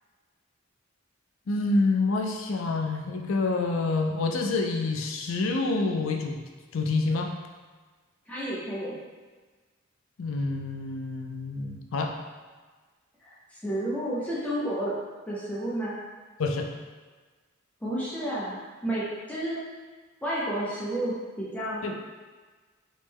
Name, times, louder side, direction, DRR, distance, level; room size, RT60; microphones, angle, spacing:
voice 1, 1.5-6.4 6.7-7.3 10.2-12.1 16.4-16.7 21.8-21.9, left 3 dB, 80° left, 3 dB, 0.4 m, -27 dB
voice 2, 8.3-9.0 13.2-13.3 13.6-14.9 15.3-15.9 17.8-19.6 20.2-21.9, right 1 dB, 5° left, -8 dB, 0.7 m, -31 dB
3.2 x 3.1 x 3.5 m, 1.4 s
head